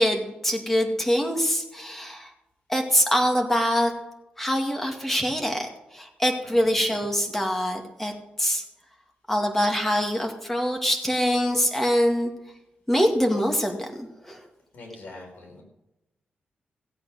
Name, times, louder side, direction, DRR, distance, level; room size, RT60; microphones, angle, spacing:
voice 1, 0.0-2.3 2.7-3.9 4.4-8.1 8.4-8.6 9.3-12.3 12.9-14.4, equal, 10° left, 3 dB, 2.2 m, -24 dB
voice 2, 14.7-15.6, left 2 dB, 70° left, 0 dB, 4.8 m, -43 dB
16.5 x 8.3 x 6.4 m, 0.93 s
wide cardioid pair, 135°, 3 cm